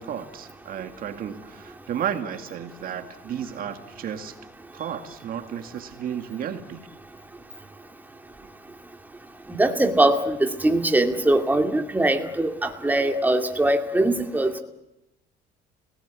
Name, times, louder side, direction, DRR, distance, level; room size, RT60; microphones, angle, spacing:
voice 1, 0.0-4.3 4.7-6.9, right 9 dB, 60° right, 7 dB, 2.1 m, -33 dB
voice 2, 9.5-14.6, right 1 dB, 10° right, 4 dB, 2.5 m, -22 dB
29.5 x 18.5 x 8.5 m, 0.90 s
cardioid pair, 110°, 17 cm